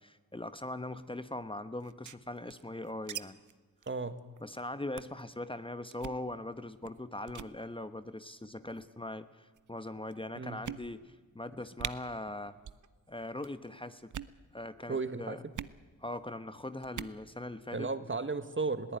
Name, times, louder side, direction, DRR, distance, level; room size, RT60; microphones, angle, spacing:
voice 1, 0.0-3.4 4.4-12.6 13.1-14.1 14.5-15.4 16.0-17.9, left 1 dB, 15° left, 11 dB, 1.1 m, -41 dB
sound 1, 1.8-3.2 3.5-3.6 3.8-4.0 4.4-4.6 5.0-5.2 5.9-6.2 6.8-7.0 7.3-7.5 8.4-8.9 9.6-9.7 10.1-10.2 10.6-11.2 11.5-11.6 11.8-11.9 12.6-12.9 13.1-13.5 14.0-14.4 15.5-15.8 16.8-17.2, right 9 dB, 60° right, 0.8 m, -42 dB
voice 2, 3.9-4.2 10.4-10.6 14.9-15.4 17.7-19.0, right 4 dB, 35° right, 11 dB, 1.7 m, -34 dB
21.0 x 15.5 x 9.4 m, 1.4 s
cardioid pair, 50°, 34 cm